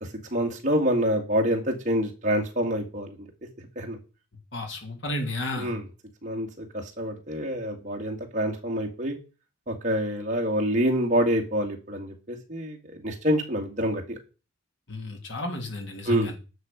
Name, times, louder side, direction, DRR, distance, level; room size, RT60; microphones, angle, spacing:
voice 1, 0.3-3.3 3.6-4.0 5.6-5.8 6.2-9.2 9.7-14.2 16.1-16.3, equal, 35° right, 1 dB, 2.2 m, -27 dB
voice 2, 4.5-5.8 14.9-16.4, left 2 dB, 60° left, 4 dB, 2.6 m, -32 dB
10.5 x 6.3 x 5.2 m, 0.32 s
head